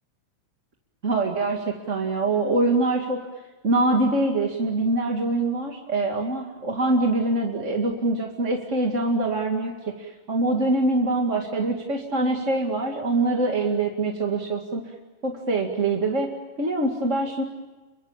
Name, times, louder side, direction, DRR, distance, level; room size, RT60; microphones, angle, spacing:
voice 1, 1.0-3.2 3.6-14.8 15.2-16.3 16.6-17.4, right 2 dB, 25° right, 1 dB, 2.0 m, -24 dB
30.0 x 23.5 x 7.2 m, 1.2 s
omnidirectional pair, 3.9 m